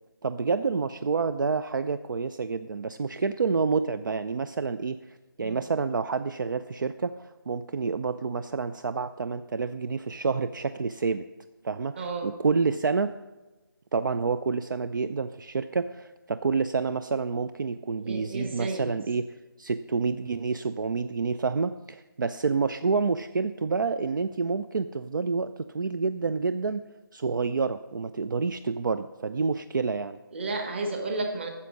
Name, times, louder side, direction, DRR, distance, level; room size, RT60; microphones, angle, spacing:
voice 1, 0.2-11.2 11.6-13.1 13.9-19.2 19.6-26.8 27.1-30.2, right 4 dB, 60° right, 11 dB, 0.4 m, -28 dB
voice 2, 12.0-12.3 17.9-18.9 30.3-31.5, right 2 dB, 30° right, 4 dB, 1.3 m, -32 dB
9.8 x 7.1 x 6.2 m, 1.1 s
figure-of-eight pair, 170°, 12 cm